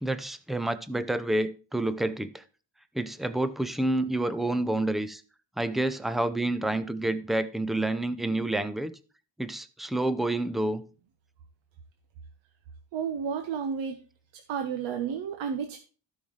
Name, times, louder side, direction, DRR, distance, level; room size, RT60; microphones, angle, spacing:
voice 1, 0.0-2.4 2.9-5.2 5.6-8.9 9.4-10.8, right 1 dB, ahead, 0.4 m, -28 dB
voice 2, 12.9-14.0 14.3-15.8, right 7 dB, 85° right, 1.2 m, -31 dB
16.0 x 5.6 x 3.2 m
cardioid pair, 175°, 45 cm